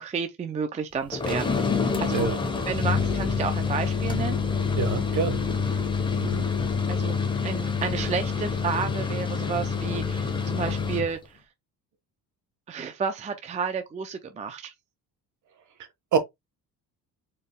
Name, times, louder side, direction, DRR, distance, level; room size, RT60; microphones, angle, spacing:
voice 1, 0.0-2.3 2.7-4.4 6.9-7.2 7.4-11.2 12.7-14.7, right 6 dB, 20° right, 0.4 m, -31 dB
sound 1, 1.1-11.1, left 5 dB, 15° left, 0.7 m, -27 dB
voice 2, 4.8-5.4 6.2-6.5 16.1-16.2, right 6 dB, 50° right, 1.0 m, -26 dB
4.5 x 2.9 x 3.4 m
cardioid pair, 170°, 37 cm